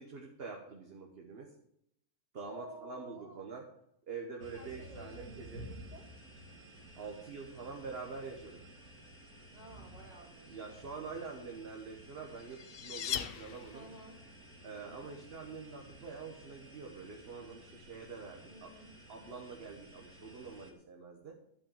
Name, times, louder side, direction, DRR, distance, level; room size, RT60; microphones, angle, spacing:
voice 1, 0.0-1.5 2.3-3.7 4.1-5.7 7.0-8.7 10.5-13.9 14.6-18.7 19.1-21.4, right 4 dB, 45° right, 1 dB, 1.4 m, -46 dB
voice 2, 2.4-3.4 4.5-6.0 9.5-10.8 13.7-14.2 14.7-15.1 18.5-18.9, right 2 dB, 25° right, -1 dB, 2.8 m, -53 dB
sound 1, 4.4-20.7, right 1 dB, 75° right, 2.0 m, -54 dB
sound 2, 12.0-14.1, left 9 dB, 60° left, 0.6 m, -40 dB
11.5 x 5.7 x 7.3 m, 0.75 s
omnidirectional pair, 1.6 m